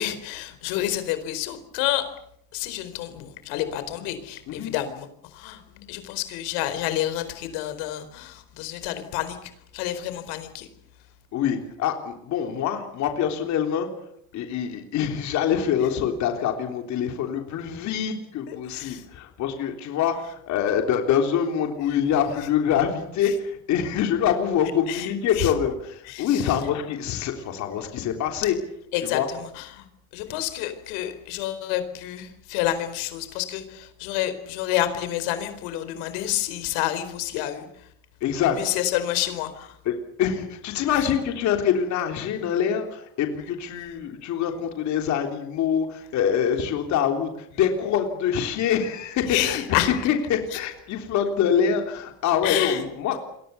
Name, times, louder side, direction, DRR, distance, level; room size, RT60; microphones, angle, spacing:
voice 1, 0.0-2.0 2.5-5.1 5.3-5.6 5.9-9.4 9.7-10.7 18.5-19.0 24.9-25.5 26.1-26.5 28.9-29.2 29.6-29.8 30.1-37.7 38.6-39.7 49.3-49.9 52.4-52.8, left 13 dB, 85° left, 10 dB, 4.5 m, -29 dB
voice 2, 11.3-13.9 14.3-28.6 29.0-29.3 38.2-38.6 39.9-49.6 50.0-53.2, left 8 dB, 45° left, 4 dB, 3.5 m, -25 dB
29.0 x 23.0 x 7.0 m, 0.74 s
cardioid pair, 175°, 40 cm